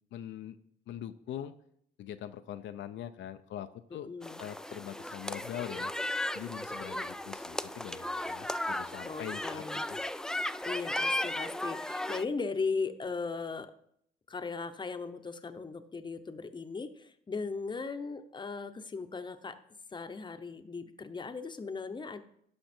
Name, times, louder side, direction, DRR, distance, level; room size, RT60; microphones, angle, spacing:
voice 1, 0.1-0.6 0.9-1.5 2.0-4.1 4.4-5.9 6.3-10.0, left 11 dB, 70° left, 9 dB, 0.5 m, -42 dB
voice 2, 3.9-4.4 9.0-9.8 10.6-13.7 14.3-19.6 19.9-22.2, left 4 dB, 25° left, 9 dB, 0.8 m, -37 dB
sound 1, 4.2-12.2, left 1 dB, 5° left, 0.3 m, -35 dB
12.0 x 5.7 x 4.3 m, 0.70 s
cardioid pair, 90°, 20 cm